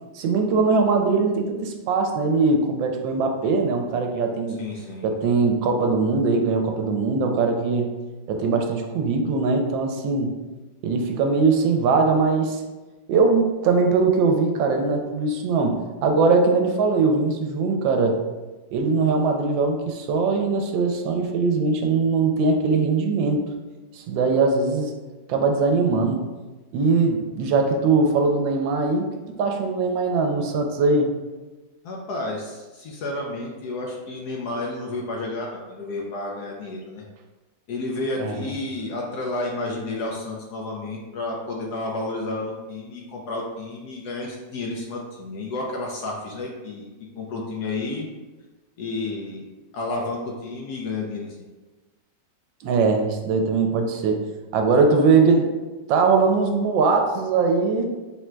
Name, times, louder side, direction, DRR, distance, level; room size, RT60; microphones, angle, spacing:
voice 1, 0.1-4.6 5.0-7.9 8.3-10.3 10.8-12.6 13.1-18.2 18.7-23.4 23.9-24.9 25.3-26.2 26.7-29.1 29.4-31.1 38.2-38.4 52.6-54.2 54.5-55.5 55.9-57.9, right 4 dB, 80° right, 3 dB, 1.3 m, -21 dB
voice 2, 4.6-5.1 31.8-37.0 37.7-46.9 47.2-48.1 48.8-49.4 49.7-51.3, left 2 dB, 70° left, -1 dB, 1.0 m, -31 dB
3.7 x 2.1 x 4.4 m, 1.2 s
omnidirectional pair, 2.0 m